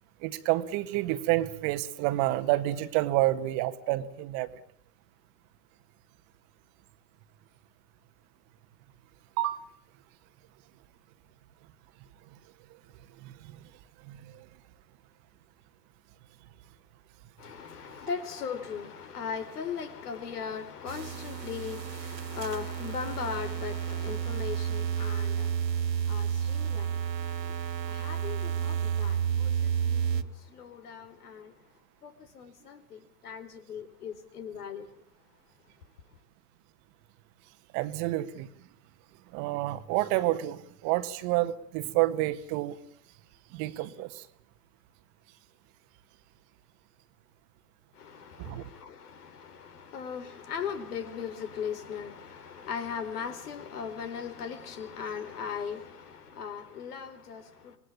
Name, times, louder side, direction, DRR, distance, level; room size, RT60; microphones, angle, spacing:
voice 1, 0.2-4.5 9.4-9.6 13.2-13.3 14.1-14.4 37.7-38.5 39.3-42.8 43.5-44.3 48.4-48.6, right 16 dB, 35° right, 1.8 m, -29 dB
voice 2, 17.4-26.9 27.2-27.6 27.8-31.5 32.0-34.9 48.0-57.8, left 7 dB, 65° left, 4.5 m, -39 dB
sound 1, 20.9-30.2, right 8 dB, 85° right, 1.7 m, -31 dB
26.0 x 20.5 x 8.7 m
hypercardioid pair, 120°, 49 cm